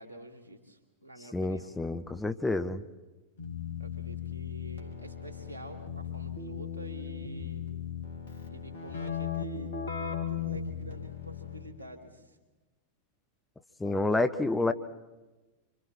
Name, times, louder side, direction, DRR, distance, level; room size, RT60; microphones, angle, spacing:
voice 1, 0.0-1.7 3.8-7.6 8.5-9.8 10.3-12.4 13.8-14.5, right 1 dB, 85° left, 2 dB, 2.9 m, -47 dB
voice 2, 1.3-2.8 13.8-14.7, left 2 dB, 10° left, 9 dB, 0.9 m, -29 dB
Keyboard (musical), 3.4-11.8, left 7 dB, 65° left, 3.0 m, -37 dB
27.5 x 25.5 x 4.4 m, 1.1 s
figure-of-eight pair, 90°, 0 cm